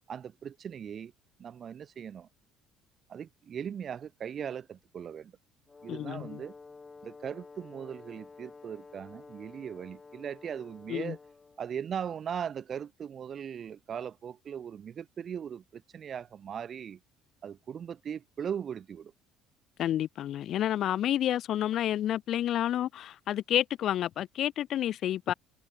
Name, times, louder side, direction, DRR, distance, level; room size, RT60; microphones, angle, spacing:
voice 1, 0.1-1.1 1.4-2.3 3.1-5.3 5.8-6.5 7.0-11.2 11.6-17.0 17.4-19.1, right 8 dB, 45° right, 0.9 m, -39 dB
Brass instrument, 5.7-11.7, left 4 dB, 25° left, 3.5 m, -51 dB
voice 2, 5.9-6.4 10.9-11.2 19.8-25.3, left 11 dB, 55° left, 0.5 m, -30 dB
hypercardioid pair, 60°, 0 cm